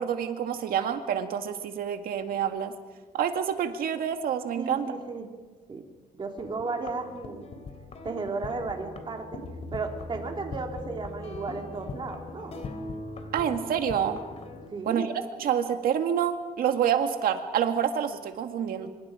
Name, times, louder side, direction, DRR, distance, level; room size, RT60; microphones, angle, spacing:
voice 1, 0.0-2.7 3.1-4.9 13.3-14.2 14.9-15.1 15.4-18.9, right 8 dB, 75° right, 6 dB, 2.0 m, -27 dB
voice 2, 4.6-5.3 5.7-5.8 6.1-7.5 8.0-9.4 9.7-12.5 14.7-15.1, right 4 dB, 30° right, 3 dB, 2.9 m, -34 dB
sound 1, 6.4-14.7, left 2 dB, 45° left, 3.1 m, -40 dB
26.5 x 26.5 x 5.0 m, 1.3 s
cardioid pair, 150°, 15 cm